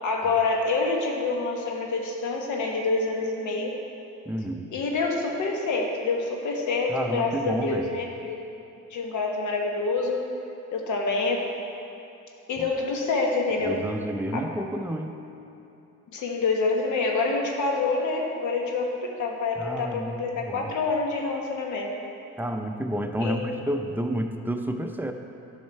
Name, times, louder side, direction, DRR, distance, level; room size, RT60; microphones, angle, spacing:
voice 1, 0.0-3.7 4.7-8.4 8.9-10.3 10.7-11.5 12.5-13.8 14.3-14.4 16.1-21.9 23.2-23.5, left 3 dB, 75° left, 0 dB, 1.2 m, -27 dB
voice 2, 4.3-4.7 6.9-7.9 12.6-12.7 13.6-15.2 19.6-20.7 22.4-25.1, right 1 dB, 5° right, 4 dB, 0.6 m, -30 dB
9.4 x 5.7 x 4.5 m, 2.9 s
cardioid pair, 90°, 30 cm